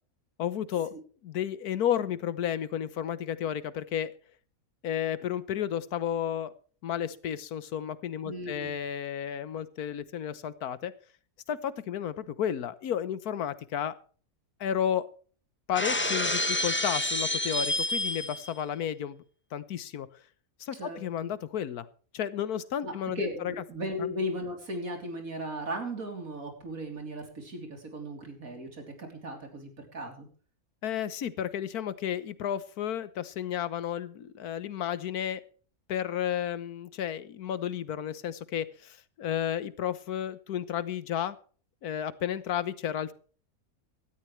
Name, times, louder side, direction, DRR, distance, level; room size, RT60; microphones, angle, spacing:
voice 1, 0.4-0.9 1.2-4.1 4.8-6.5 6.8-10.9 11.5-13.9 14.6-15.1 15.7-19.2 19.5-20.1 20.6-21.9 22.1-23.6 24.0-24.1 30.8-35.4 35.9-41.4 41.8-43.1, left 9 dB, 85° left, 16 dB, 1.4 m, -32 dB
voice 2, 8.2-8.7 20.7-21.3 22.8-30.3, equal, 65° right, 3 dB, 3.8 m, -37 dB
Shatter, 15.7-18.5, left 1 dB, 10° left, 0.8 m, -29 dB
17.5 x 13.0 x 3.2 m, 0.42 s
omnidirectional pair, 1.6 m